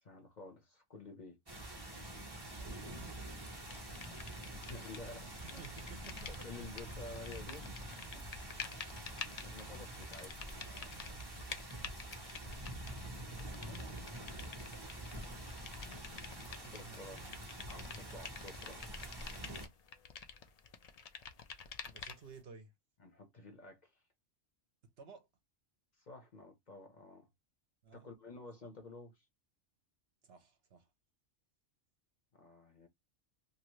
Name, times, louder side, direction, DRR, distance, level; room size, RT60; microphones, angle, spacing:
voice 1, 0.0-1.4 4.4-5.6 6.3-8.3 8.6-8.9 9.4-11.2 15.8-17.3 17.7-18.8 23.0-24.0 26.0-27.3 27.9-29.2 32.3-32.9, left 2 dB, 45° left, 0.8 m, -52 dB
sound 1, 1.5-19.7, right 1 dB, 20° right, 0.9 m, -46 dB
voice 2, 2.5-3.3 5.2-6.5 9.1-9.6 12.9-14.0 14.4-15.4 16.4-17.5 21.9-22.7 24.8-25.3 27.8-28.1 30.2-30.9, right 5 dB, 60° right, 0.9 m, -57 dB
sound 2, 3.7-5.1 5.4-22.4, left 6 dB, 60° left, 0.4 m, -49 dB
2.8 x 2.6 x 3.0 m
omnidirectional pair, 1.2 m